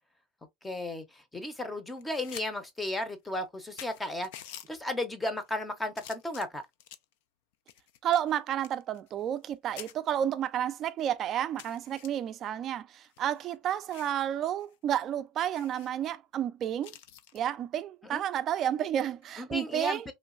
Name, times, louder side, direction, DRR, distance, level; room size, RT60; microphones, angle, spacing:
voice 1, 0.6-4.3 4.7-6.6 18.0-18.2 19.4-20.1, left 1 dB, 10° left, 0.6 m, -34 dB
sound 1, 2.0-2.5 2.8-2.9 3.5-3.6 3.8-4.7 5.4-5.6 6.0-7.1 7.7-9.5 9.8-9.9 10.6-10.7 11.0-11.1 11.6-12.1 12.9-14.2 14.6-14.7 15.0-15.1 15.5-15.9 16.8-17.4 19.1-19.4, left 11 dB, 80° left, 0.3 m, -48 dB
voice 2, 8.0-16.9 17.3-20.1, right 10 dB, 40° right, 0.3 m, -31 dB
3.0 x 2.2 x 2.4 m
supercardioid pair, 130°, 0 cm